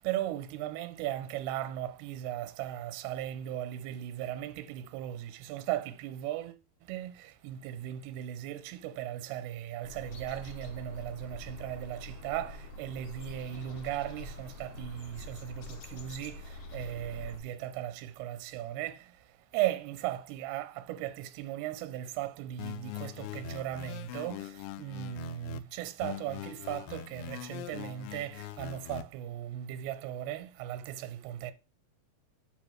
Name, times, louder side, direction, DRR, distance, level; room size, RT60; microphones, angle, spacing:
voice 1, 0.0-31.5, right 12 dB, 90° right, 2.7 m, -37 dB
sound 1, 9.8-17.4, left 1 dB, 65° left, 1.6 m, -45 dB
sound 2, 22.6-25.6 26.0-29.0, left 13 dB, 85° left, 2.6 m, -42 dB
9.7 x 3.5 x 6.3 m
omnidirectional pair, 4.5 m